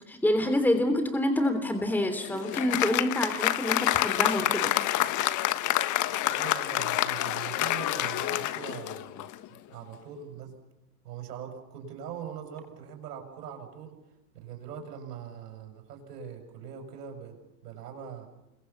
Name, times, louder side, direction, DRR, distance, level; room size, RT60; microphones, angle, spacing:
voice 1, 0.1-4.7, left 1 dB, 5° left, 7 dB, 3.1 m, -27 dB
Applause, 1.9-9.5, left 14 dB, 35° left, 1.3 m, -28 dB
voice 2, 6.3-9.3 9.7-10.6 11.0-14.0 14.3-18.3, right 8 dB, 75° right, 5 dB, 7.3 m, -42 dB
29.0 x 23.0 x 7.2 m, 0.95 s
hypercardioid pair, 105°, 49 cm